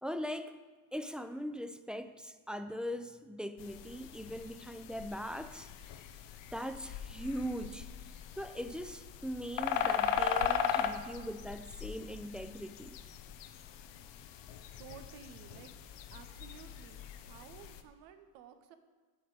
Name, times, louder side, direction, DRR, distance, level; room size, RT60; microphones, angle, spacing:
voice 1, 0.0-0.5 0.9-5.7 6.5-7.9 8.4-13.0, equal, ahead, 10 dB, 0.5 m, -40 dB
sound 1, 3.6-17.8, left 8 dB, 75° left, 0.7 m, -39 dB
voice 2, 14.8-15.7 16.1-18.8, right 8 dB, 85° right, 9 dB, 0.7 m, -54 dB
9.1 x 5.9 x 4.7 m, 1.4 s
hypercardioid pair, 45°, 43 cm